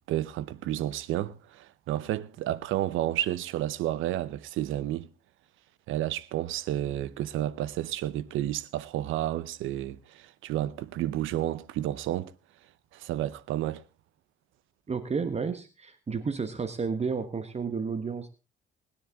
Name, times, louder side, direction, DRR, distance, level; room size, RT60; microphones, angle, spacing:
voice 1, 0.1-5.1 5.9-12.3 12.9-13.8, right 13 dB, 90° right, 0.8 m, -31 dB
voice 2, 14.9-18.3, right 5 dB, 35° right, 1.2 m, -31 dB
19.5 x 10.0 x 3.6 m
cardioid pair, 90°, 20 cm